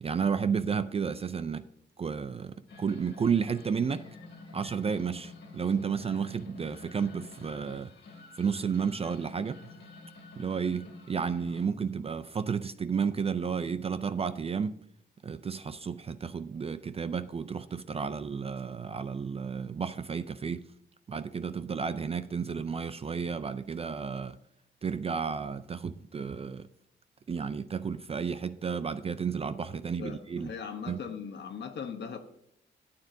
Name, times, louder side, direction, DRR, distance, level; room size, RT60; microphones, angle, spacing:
voice 1, 0.0-1.7 2.0-4.1 4.5-7.9 8.4-9.6 10.4-14.8 15.2-20.6 21.1-24.4 24.8-26.7 27.3-30.5 30.9-31.0, right 6 dB, 30° right, 0.4 m, -32 dB
sound 1, 2.7-11.7, left 3 dB, 85° left, 2.4 m, -49 dB
voice 2, 30.0-32.2, left 6 dB, 65° left, 1.0 m, -39 dB
13.0 x 9.3 x 2.7 m
wide cardioid pair, 135°, 19 cm